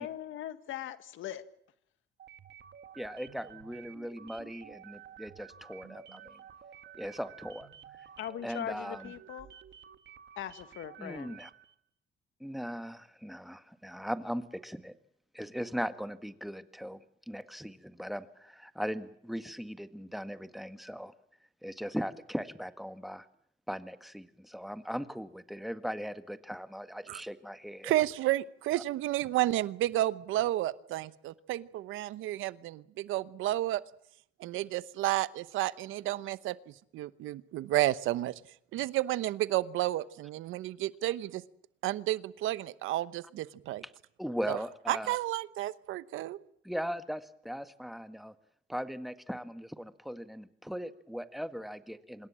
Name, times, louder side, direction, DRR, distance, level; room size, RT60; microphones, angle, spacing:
voice 1, 0.0-1.4 8.2-9.5 10.4-11.4, left 11 dB, 80° left, 12 dB, 1.7 m, -40 dB
sound 1, 2.2-11.7, right 9 dB, 60° right, 1.7 m, -52 dB
voice 2, 2.9-6.4 6.9-7.7 8.0-8.1 8.4-9.1 11.0-11.5 12.4-14.9 15.3-21.1 21.6-23.3 23.7-27.9 28.7-28.8 43.8-43.9 44.2-45.2 46.6-48.3 48.7-52.3, equal, ahead, 10 dB, 1.8 m, -39 dB
voice 3, 27.8-33.8 34.4-36.6 36.9-38.3 38.7-41.4 41.8-43.8 44.5-44.6 44.9-46.4, right 15 dB, 90° right, 17 dB, 0.9 m, -31 dB
26.5 x 21.0 x 7.5 m, 0.68 s
cardioid pair, 90°, 20 cm